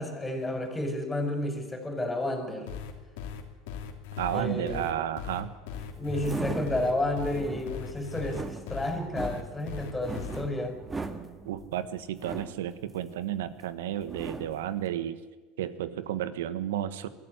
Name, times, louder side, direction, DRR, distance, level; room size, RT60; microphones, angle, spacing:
voice 1, 0.0-2.7 4.3-4.9 6.0-10.8, left 1 dB, 10° left, 5 dB, 5.3 m, -31 dB
sound 1, 2.7-10.4, left 7 dB, 75° left, 3.0 m, -39 dB
voice 2, 4.2-5.5 11.4-15.2 15.6-17.1, right 11 dB, 85° right, 13 dB, 1.3 m, -32 dB
sound 2, 5.7-13.6 14.0-14.8, right 3 dB, 15° right, 1.8 m, -39 dB
23.0 x 14.0 x 9.7 m, 1.3 s
hypercardioid pair, 95°, 0 cm